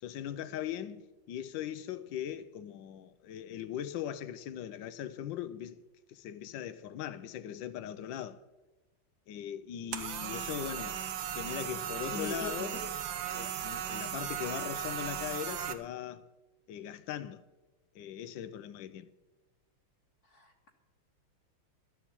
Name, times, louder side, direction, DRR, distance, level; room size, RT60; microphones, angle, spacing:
voice 1, 0.0-5.8 6.1-8.4 9.3-11.0 11.3-12.8 13.3-16.3 16.7-17.4 17.9-19.1, left 10 dB, 70° left, 1.2 m, -40 dB
sound 1, 9.9-15.7, right 9 dB, 70° right, 1.5 m, -37 dB
voice 2, 12.1-12.8 20.3-20.7, left 3 dB, 50° left, 1.5 m, -41 dB
13.0 x 7.2 x 8.6 m
omnidirectional pair, 2.3 m